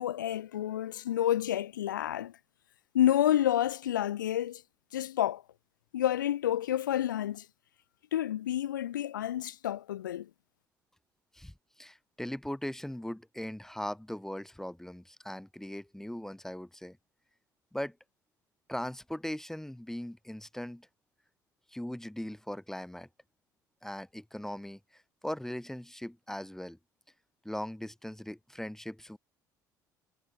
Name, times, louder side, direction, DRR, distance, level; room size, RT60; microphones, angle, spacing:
voice 1, 0.0-2.3 2.9-4.6 4.9-5.4 5.9-7.5 8.1-10.3, left 12 dB, 75° left, 1.3 m, -29 dB
voice 2, 11.3-17.0 17.7-17.9 18.7-20.9 21.7-23.1 23.8-26.8 27.4-29.2, left 1 dB, 5° left, 2.7 m, -39 dB
figure-of-eight pair, 55°, 10 cm